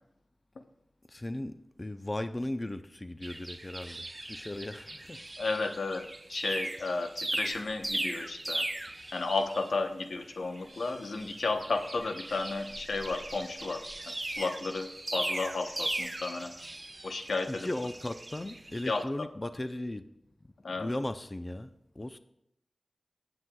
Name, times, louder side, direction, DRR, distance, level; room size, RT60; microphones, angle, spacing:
voice 1, 1.1-5.3 17.5-20.1 20.4-22.2, left 1 dB, 30° left, 0.5 m, -37 dB
sound 1, 3.2-9.9 10.2-19.0, right 1 dB, 30° right, 0.7 m, -39 dB
voice 2, 5.4-8.6 9.1-16.5 17.0-17.7 18.9-19.0 20.6-20.9, left 3 dB, 90° left, 0.8 m, -33 dB
19.0 x 8.0 x 2.3 m
wide cardioid pair, 65°, 0 cm